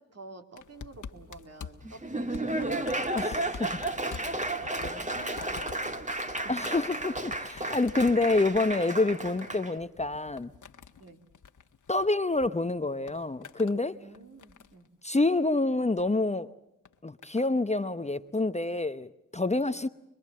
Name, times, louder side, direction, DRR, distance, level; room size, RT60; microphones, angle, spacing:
voice 1, 0.0-4.3 4.6-6.4 9.1-9.3 11.0-11.2 14.0-14.9 19.6-19.8, right 3 dB, 50° right, 3.1 m, -50 dB
sound 1, 0.6-12.5 12.8-13.8 14.1-14.9 15.8-16.1 16.8-17.5 18.4-18.5, left 6 dB, 70° left, 1.5 m, -47 dB
Laughter / Applause, 1.8-9.7, right 2 dB, 25° right, 2.0 m, -33 dB
voice 2, 3.2-3.7 6.5-10.5 11.9-14.0 15.0-16.5 17.0-19.9, left 2 dB, 20° left, 0.9 m, -27 dB
26.0 x 21.5 x 7.6 m
cardioid pair, 45°, 32 cm